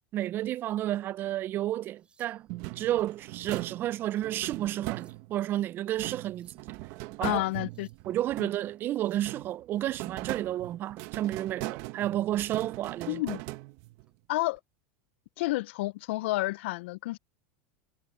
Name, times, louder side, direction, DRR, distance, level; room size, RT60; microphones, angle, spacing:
voice 1, 0.1-2.5 2.8-6.6 7.2-7.4 8.1-13.2, right 13 dB, 35° right, 0.4 m, -31 dB
sound 1, 1.7-2.6 3.2-3.8 4.7-5.4 6.2-6.7 7.4-8.1 8.8-9.3 11.4-11.5 12.1-12.3 12.7-12.9 14.0-14.6 15.7-15.9, right 5 dB, 15° right, 5.8 m, -68 dB
sound 2, 2.5-5.5 6.0-8.8 9.2-14.1, right 21 dB, 55° right, 1.1 m, -40 dB
voice 2, 7.2-7.9 8.4-8.5 13.1-13.4 14.3-14.6 15.4-17.2, left 19 dB, 75° left, 0.4 m, -30 dB
supercardioid pair, 135°, 6 cm